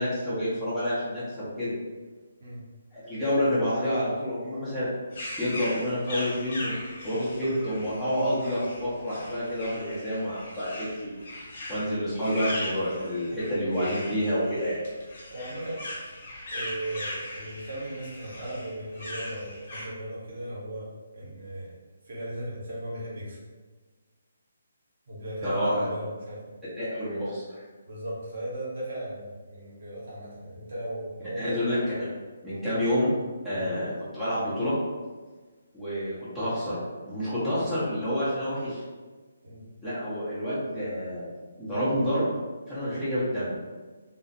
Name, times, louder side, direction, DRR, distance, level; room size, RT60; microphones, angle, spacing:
voice 1, 0.0-1.7 2.9-4.9 5.4-6.7 7.0-11.1 11.7-14.8 25.4-25.9 26.8-27.4 31.4-32.1 32.4-33.1 33.4-34.8 35.7-36.8 37.0-38.8 39.8-41.3 41.6-42.3 42.7-43.6, equal, ahead, -15 dB, 0.8 m, -28 dB
sound 1, 5.1-19.9, left 1 dB, 45° left, 0.8 m, -39 dB
voice 2, 15.3-15.8 16.5-21.8 22.0-23.4 25.1-26.4 27.8-31.6 33.5-33.7 39.4-39.7, right 1 dB, 50° right, -7 dB, 1.0 m, -37 dB
2.3 x 2.1 x 2.8 m, 1.4 s
figure-of-eight pair, 140°, 0 cm